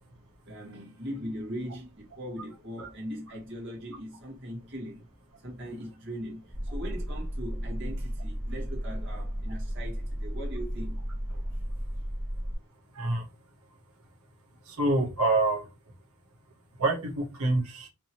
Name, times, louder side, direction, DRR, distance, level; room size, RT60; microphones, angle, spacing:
voice 1, 0.5-5.1 5.4-11.0 11.3-11.6, equal, 55° right, 1.9 m, -40 dB
sound 1, 6.5-12.5, equal, ahead, 1.0 m, -34 dB
voice 2, 14.7-15.7 16.8-17.9, right 2 dB, 85° right, 1.6 m, -26 dB
5.2 x 3.0 x 3.0 m
head